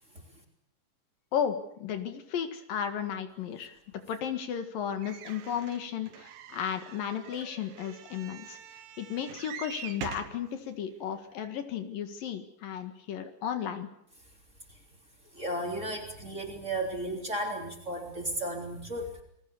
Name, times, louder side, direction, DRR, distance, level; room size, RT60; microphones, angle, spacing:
voice 1, 1.3-3.7 4.1-8.6 9.0-13.9, left 8 dB, 70° left, 8 dB, 3.4 m, -34 dB
sound 1, 5.0-10.4 11.1-11.2 11.4-11.5, right 9 dB, 75° right, 3.0 m, -44 dB
voice 2, 15.3-19.2, right 1 dB, 20° right, 1 dB, 3.7 m, -34 dB
29.0 x 20.5 x 7.1 m, 0.73 s
omnidirectional pair, 4.2 m